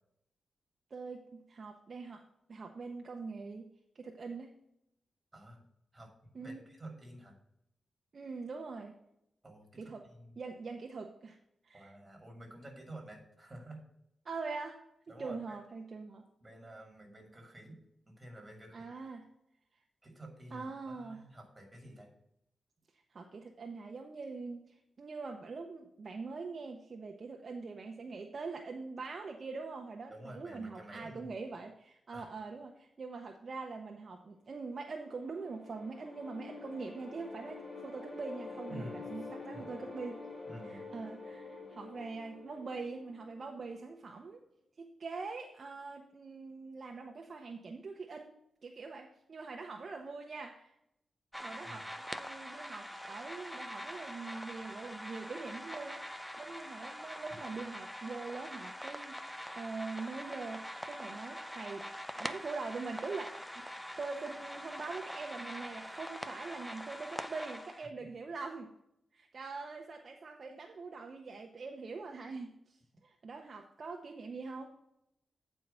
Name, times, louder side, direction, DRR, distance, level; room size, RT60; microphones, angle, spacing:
voice 1, 0.9-2.2 2.5-3.7 3.9-4.5 6.3-6.6 8.1-8.9 9.8-10.0 10.4-11.4 11.6-11.9 14.2-14.8 15.2-16.2 18.7-19.2 20.5-21.2 23.1-40.2 40.6-44.4 44.8-48.3 48.6-50.7 51.4-56.0 56.4-61.8 62.2-68.7 69.1-74.7, right 4 dB, 45° right, 2 dB, 0.8 m, -43 dB
voice 2, 5.3-5.6 5.9-7.4 9.4-9.8 10.1-10.3 11.7-13.8 15.1-15.6 16.4-18.9 20.0-22.1 30.1-31.3 32.1-32.3 38.7-39.7 40.5-40.8 51.6-51.9 63.8-63.9, right 1 dB, 15° right, 1 dB, 2.4 m, -50 dB
sound 1, 34.7-43.9, left 3 dB, 25° left, 1.9 m, -47 dB
sound 2, 51.3-67.9, equal, ahead, 0.4 m, -44 dB
8.7 x 4.6 x 5.4 m, 0.79 s
wide cardioid pair, 130°, 0 cm